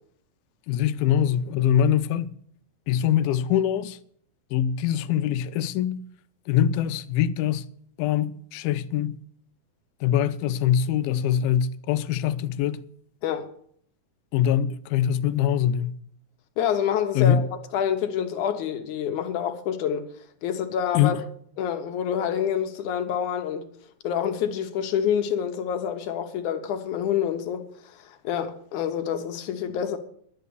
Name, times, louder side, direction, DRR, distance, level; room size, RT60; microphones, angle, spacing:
voice 1, 0.7-2.3 2.9-4.0 4.5-6.0 6.5-7.6 8.0-9.2 10.0-12.8 14.3-15.9 17.2-17.4 20.9-21.2, left 10 dB, 90° left, 2.5 m, -23 dB
voice 2, 16.6-17.5 17.7-20.1 20.4-21.2 21.6-23.7 24.0-30.0, left 8 dB, 70° left, 2.2 m, -27 dB
11.5 x 9.3 x 6.8 m
omnidirectional pair, 4.1 m